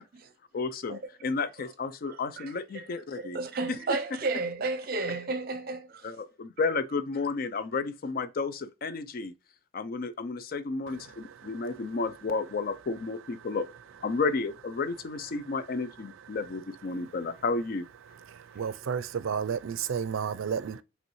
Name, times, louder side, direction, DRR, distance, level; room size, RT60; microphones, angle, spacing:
voice 1, 0.5-3.4 6.0-9.3 9.7-13.7 14.0-17.9, left 4 dB, 50° left, 0.4 m, -32 dB
voice 2, 2.0-6.2 6.7-6.8 7.5-7.7, right 3 dB, 50° right, 0.7 m, -34 dB
voice 3, 18.5-20.8, right 7 dB, 85° right, 0.4 m, -31 dB
5.3 x 3.1 x 3.0 m
head